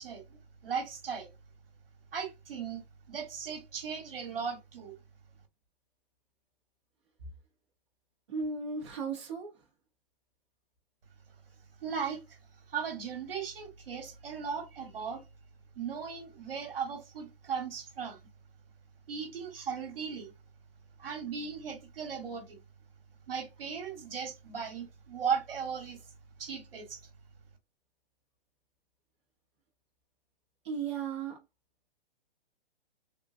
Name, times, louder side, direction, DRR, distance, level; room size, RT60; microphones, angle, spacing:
voice 1, 0.0-1.3 2.1-2.8 3.1-4.9 11.8-12.4 12.7-15.2 15.8-18.2 19.1-20.3 21.0-22.6 23.3-26.0 26.4-27.0, right 6 dB, 65° right, 1.2 m, -37 dB
voice 2, 8.3-9.5 30.6-31.4, right 5 dB, 30° right, 0.7 m, -35 dB
3.5 x 2.2 x 2.4 m
hypercardioid pair, 170°, 30 cm